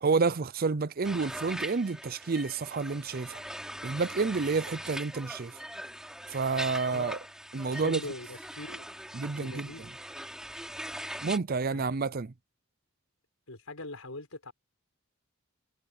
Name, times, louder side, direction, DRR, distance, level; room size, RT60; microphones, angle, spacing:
voice 1, 0.0-3.4 3.8-5.5 6.3-7.2 7.5-8.0 9.1-9.7 11.2-12.3, right 4 dB, 45° right, 0.6 m, -29 dB
sound 1, 1.0-11.4, equal, 5° right, 3.3 m, -41 dB
voice 2, 7.6-8.9 9.4-9.8 11.7-12.0 13.5-14.5, left 2 dB, 90° left, 5.5 m, -42 dB
head